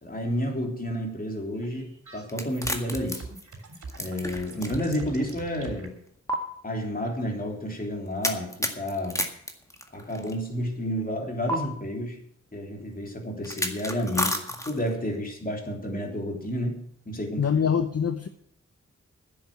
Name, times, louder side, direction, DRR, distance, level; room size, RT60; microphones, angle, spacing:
voice 1, 0.0-3.3 4.0-6.0 6.6-9.3 9.9-12.2 12.5-17.4, equal, 30° left, 1 dB, 3.4 m, -31 dB
sound 1, 1.5-5.9, right 4 dB, 80° right, 3.0 m, -43 dB
sound 2, 2.3-5.0 5.3-5.4 6.3-6.4 8.2-10.3 11.5-11.6 13.4-14.9, equal, 10° left, 1.9 m, -30 dB
voice 2, 17.4-18.3, left 7 dB, 55° left, 8 dB, 0.9 m, -24 dB
10.5 x 7.8 x 9.4 m, 0.71 s
wide cardioid pair, 70°, 29 cm